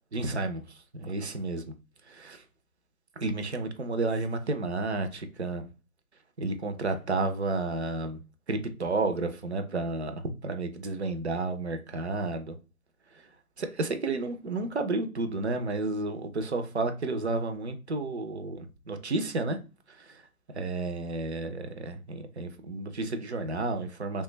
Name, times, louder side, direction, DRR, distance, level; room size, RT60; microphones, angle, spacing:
voice 1, 0.1-0.6 0.9-1.6 2.1-2.4 3.2-5.6 6.4-8.2 8.5-10.1 10.4-12.5 13.6-19.6 20.0-20.2 20.5-24.2, right 3 dB, 50° right, 0.5 m, -31 dB
3.2 x 2.2 x 3.1 m
figure-of-eight pair, 150°, 44 cm